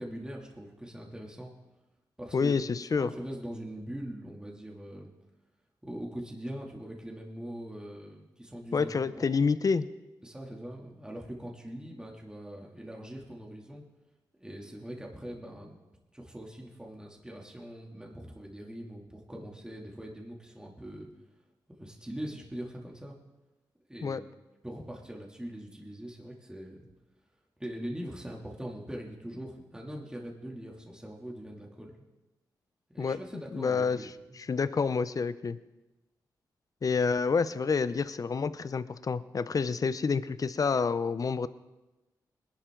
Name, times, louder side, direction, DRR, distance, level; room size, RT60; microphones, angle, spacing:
voice 1, 0.0-1.5 2.2-2.6 2.9-5.1 5.8-9.4 10.2-13.8 14.4-15.8 16.1-21.1 21.8-23.2 23.9-24.3 24.6-26.9 27.6-32.1 32.9-34.1, equal, 10° right, -1 dB, 2.8 m, -42 dB
voice 2, 2.3-3.1 8.7-9.9 24.0-24.2 33.0-34.0 34.4-35.6 36.8-41.5, left 5 dB, 50° left, 14 dB, 0.7 m, -28 dB
20.5 x 11.5 x 3.9 m, 1.1 s
cardioid pair, 55°, 8 cm